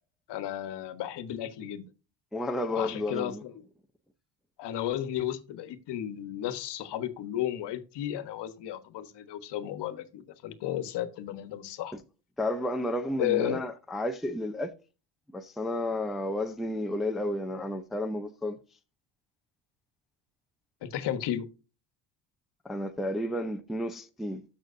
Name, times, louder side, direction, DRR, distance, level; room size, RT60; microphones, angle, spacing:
voice 1, 0.3-1.9 2.8-3.7 4.6-12.0 13.2-13.6 20.8-21.5, left 11 dB, 60° left, 1.3 m, -33 dB
voice 2, 2.3-3.4 11.9-12.0 12.4-14.7 15.3-18.6 22.6-24.4, left 1 dB, ahead, 0.5 m, -32 dB
13.0 x 6.2 x 2.6 m
cardioid pair, 140°, 46 cm